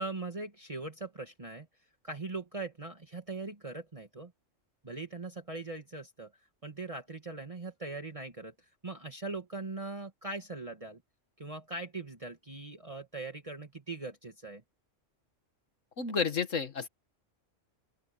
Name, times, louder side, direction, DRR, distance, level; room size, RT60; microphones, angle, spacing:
voice 1, 0.0-1.7 2.0-4.3 4.8-6.3 6.6-11.0 11.4-14.6, right 3 dB, 25° right, 1.9 m, -40 dB
voice 2, 16.0-16.9, left 5 dB, 85° left, 2.0 m, -31 dB
open air
omnidirectional pair, 1.3 m